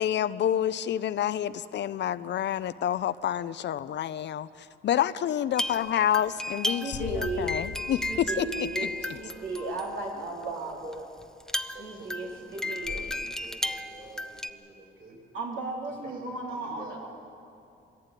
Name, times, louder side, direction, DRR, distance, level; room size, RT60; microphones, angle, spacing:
voice 1, 0.0-9.2, left 10 dB, 65° left, 14 dB, 0.6 m, -29 dB
sound 1, 5.5-10.4 10.9-11.0 11.2-14.5, left 1 dB, 5° left, 0.8 m, -34 dB
voice 2, 5.8-6.1 8.8-10.7 11.7-15.2 16.0-17.1, right 2 dB, 45° right, 1 dB, 6.5 m, -49 dB
voice 3, 6.7-7.5 8.1-8.9 9.1-11.1 11.6-13.2 15.3-17.1, right 3 dB, 75° right, -1 dB, 3.1 m, -35 dB
sound 2, 6.9-9.9, left 4 dB, 85° left, 2.5 m, -41 dB
21.5 x 16.0 x 9.0 m, 2.5 s
cardioid pair, 90°, 20 cm